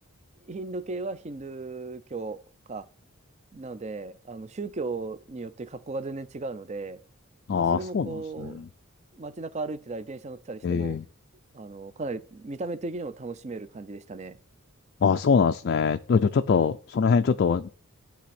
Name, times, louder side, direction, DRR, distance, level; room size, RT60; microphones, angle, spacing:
voice 1, 0.4-2.4 2.7-2.9 3.5-7.0 7.5-8.6 9.1-11.0 11.5-14.4, right 3 dB, 30° right, 0.5 m, -36 dB
voice 2, 7.5-8.6 10.6-11.0 15.0-17.7, left 5 dB, 50° left, 0.3 m, -23 dB
10.0 x 3.4 x 5.8 m
head